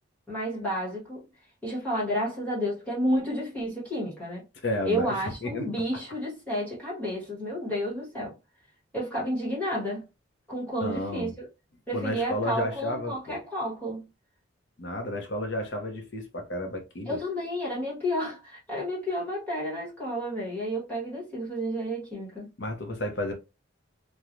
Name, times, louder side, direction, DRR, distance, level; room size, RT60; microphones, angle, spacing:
voice 1, 0.3-1.2 1.6-4.4 4.8-8.3 8.9-10.0 10.5-11.5 11.9-14.0 17.1-22.5, equal, 10° left, 1.3 m, -31 dB
voice 2, 4.6-5.7 10.8-11.4 11.9-13.4 14.8-17.2 22.6-23.3, left 1 dB, 60° left, 0.8 m, -32 dB
3.1 x 2.3 x 2.5 m
head